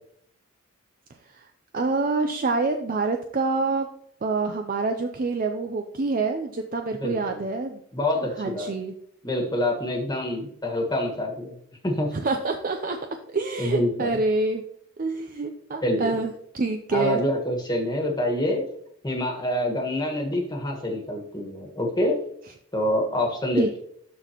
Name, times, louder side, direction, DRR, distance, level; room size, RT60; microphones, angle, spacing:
voice 1, 1.7-3.9 4.2-7.8 8.2-8.9 12.1-13.0 13.3-14.6 15.0-17.2 23.6-23.8, right 3 dB, 40° right, 5 dB, 0.5 m, -26 dB
voice 2, 7.0-7.4 7.9-8.7 9.2-11.5 11.8-12.1 13.6-14.1 15.8-16.1 16.9-18.6 19.0-22.2 22.7-23.8, left 1 dB, 20° left, 1 dB, 1.5 m, -26 dB
12.0 x 4.1 x 3.0 m, 0.68 s
head